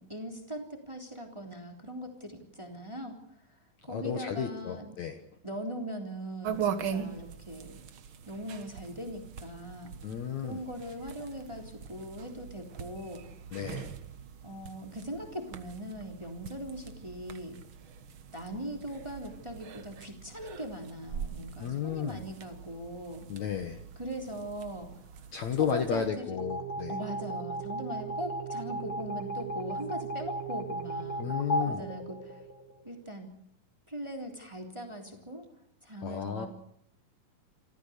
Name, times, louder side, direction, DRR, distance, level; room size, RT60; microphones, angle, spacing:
voice 1, 0.0-3.2 3.8-4.9 5.4-7.8 8.3-9.9 10.4-13.2 13.5-13.7 14.4-17.6 18.3-23.2 24.0-25.2 25.5-26.3 26.9-32.4 32.8-33.3 33.9-35.4 35.8-36.5, equal, 10° right, 3 dB, 3.1 m, -40 dB
voice 2, 3.9-5.2 10.0-10.6 13.5-14.0 21.6-22.2 23.3-23.8 25.3-27.0 31.2-31.8 36.0-36.5, left 8 dB, 60° left, 6 dB, 2.3 m, -33 dB
sound 1, 6.4-26.1, right 7 dB, 75° right, 1.1 m, -42 dB
sound 2, 26.4-32.9, right 1 dB, 30° left, 3.8 m, -35 dB
28.0 x 14.5 x 8.2 m, 0.73 s
omnidirectional pair, 4.3 m